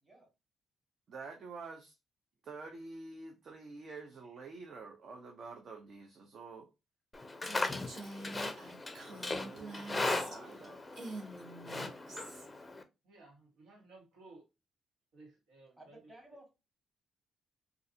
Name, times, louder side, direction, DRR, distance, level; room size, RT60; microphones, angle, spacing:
voice 1, 1.1-1.9 2.4-6.7 9.0-11.0, right 4 dB, 50° right, 0.7 m, -48 dB
Livestock farm animals working animals, 7.1-12.8, left 2 dB, 15° left, 0.5 m, -38 dB
Female speech woman speaking, 7.4-10.6 10.9-12.5, right 2 dB, 70° right, 1.4 m, -46 dB
voice 2, 13.0-14.4 15.1-16.0, right 2 dB, 85° right, 1.3 m, -57 dB
voice 3, 15.8-16.5, right 1 dB, 20° right, 1.8 m, -55 dB
3.9 x 2.5 x 2.7 m
cardioid pair, 110°, 0 cm